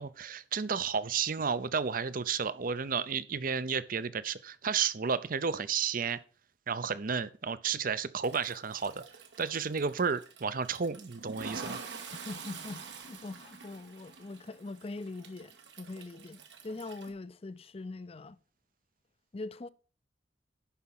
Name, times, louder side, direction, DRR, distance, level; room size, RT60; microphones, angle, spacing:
voice 1, 0.0-6.2 6.7-9.0 9.4-11.8, right 6 dB, 50° right, 0.6 m, -32 dB
Toilet flush, 8.2-17.1, right 4 dB, 90° right, 1.8 m, -47 dB
voice 2, 12.1-16.4 16.6-18.4 19.3-19.7, left 2 dB, 35° left, 0.5 m, -42 dB
11.5 x 4.9 x 5.9 m
head